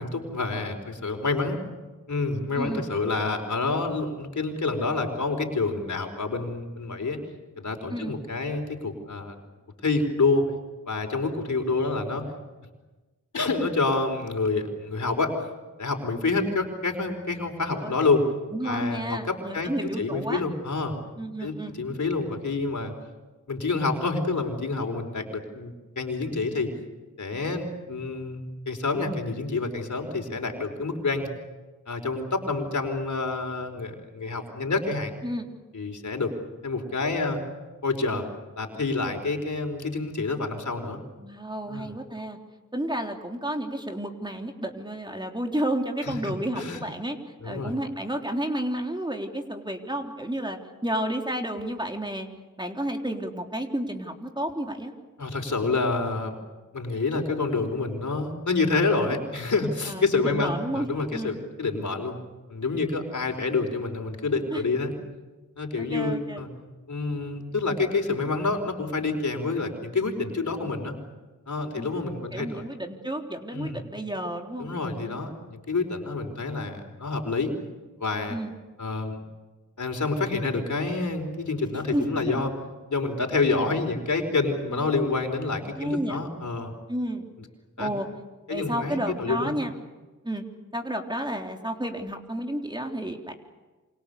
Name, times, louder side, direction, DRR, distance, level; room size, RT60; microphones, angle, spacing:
voice 1, 0.0-1.6 2.1-7.2 7.6-9.3 9.8-10.5 10.9-12.2 13.3-15.3 15.8-18.2 18.6-20.9 21.4-22.9 23.5-26.7 27.2-31.3 31.9-35.1 35.7-36.3 36.6-37.4 37.8-38.2 38.6-41.0 41.7-41.9 46.0-46.8 47.4-47.7 55.2-56.4 56.7-62.2 62.5-65.0 65.6-66.5 66.9-70.9 71.5-72.7 73.5-73.8 74.6-77.5 78.0-78.4 78.8-79.2 79.8-82.5 82.9-86.7 87.8-87.9 88.5-89.5, left 3 dB, 60° left, 5 dB, 4.7 m, -28 dB
voice 2, 18.5-20.4 21.2-21.7 35.2-35.5 41.2-42.4 42.7-47.2 47.4-52.3 52.6-54.9 59.9-61.4 64.5-64.6 65.8-66.4 71.7-72.0 72.3-74.7 75.0-75.3 78.3-78.5 81.9-82.0 84.2-84.3 84.7-84.8 85.7-86.2 86.9-87.3 87.8-88.1 88.5-89.7 90.2-90.4 90.7-93.3, right 1 dB, 15° right, 3 dB, 3.5 m, -31 dB
28.0 x 26.0 x 7.0 m, 1.2 s
cardioid pair, 45°, 33 cm